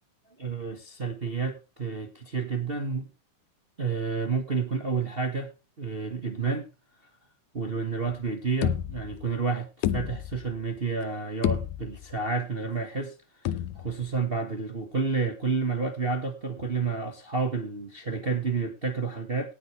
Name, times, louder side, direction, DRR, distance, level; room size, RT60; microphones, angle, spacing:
voice 1, 0.4-3.1 3.8-5.5 5.8-6.7 7.5-19.5, right 4 dB, 55° right, 0.6 m, -30 dB
sound 1, 8.2-8.3 8.6-9.4 9.8-10.6 11.0-11.1 11.4-12.2 13.5-14.1, left 11 dB, 75° left, 2.2 m, -30 dB
18.5 x 7.8 x 3.3 m
omnidirectional pair, 3.7 m